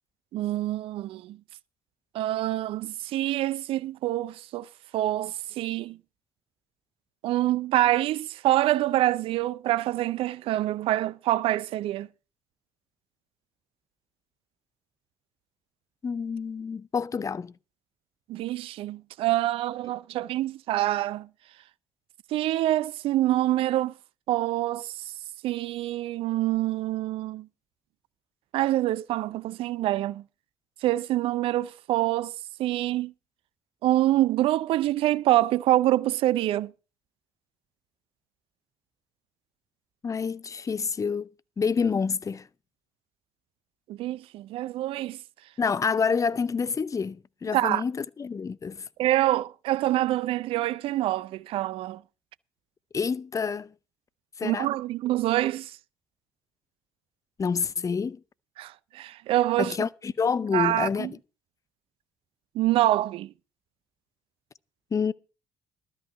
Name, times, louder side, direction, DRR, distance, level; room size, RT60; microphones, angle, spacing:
voice 1, 0.3-1.4 2.1-4.7 4.9-6.0 7.2-12.1 18.3-21.3 22.3-23.9 24.3-24.9 25.4-27.5 28.5-30.2 30.8-32.3 32.6-33.1 33.8-36.7 43.9-45.2 47.5-47.8 49.0-52.0 54.4-55.7 58.6-59.8 60.5-61.1 62.5-63.3, right 15 dB, 65° right, 0.5 m, -26 dB
voice 2, 16.0-17.5 40.0-41.3 41.6-42.5 45.6-48.9 52.9-53.7 54.4-54.7 57.4-58.2 59.6-61.2 64.9-65.1, left 5 dB, 30° left, 0.6 m, -28 dB
13.0 x 5.5 x 8.0 m
hypercardioid pair, 55°, 10 cm